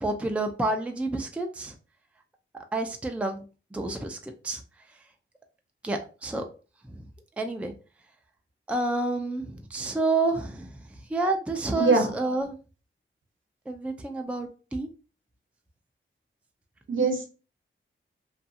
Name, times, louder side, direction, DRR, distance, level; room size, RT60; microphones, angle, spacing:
voice 1, 0.0-1.7 2.7-3.4 3.7-4.6 5.8-6.4 6.9-7.1 7.4-7.7 8.7-10.7 11.1-12.6 13.7-14.9, right 2 dB, 5° right, 4 dB, 0.4 m, -29 dB
voice 2, 11.8-12.1 16.9-17.3, right 4 dB, 70° right, 2 dB, 0.8 m, -22 dB
2.5 x 2.3 x 2.6 m, 0.34 s
wide cardioid pair, 75°, 21 cm